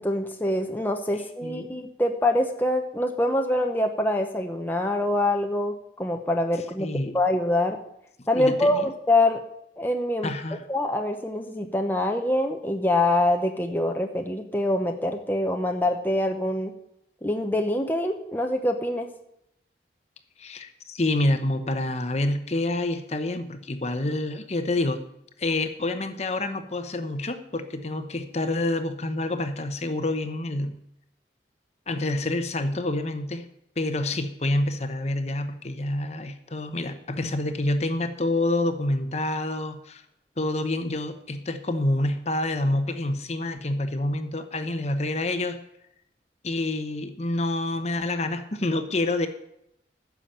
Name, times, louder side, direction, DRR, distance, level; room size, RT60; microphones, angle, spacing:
voice 1, 0.0-6.9 7.1-7.8 8.3-9.4 9.8-10.3 10.7-16.7 17.2-19.1, left 1 dB, 10° left, 3 dB, 0.8 m, -25 dB
voice 2, 1.1-1.7 6.8-7.1 8.4-8.9 10.2-10.6 20.4-25.0 25.4-30.8 31.9-33.4 33.8-40.0 40.4-45.6 46.4-49.3, left 2 dB, 35° left, 9 dB, 0.9 m, -27 dB
9.9 x 7.1 x 8.9 m, 0.78 s
head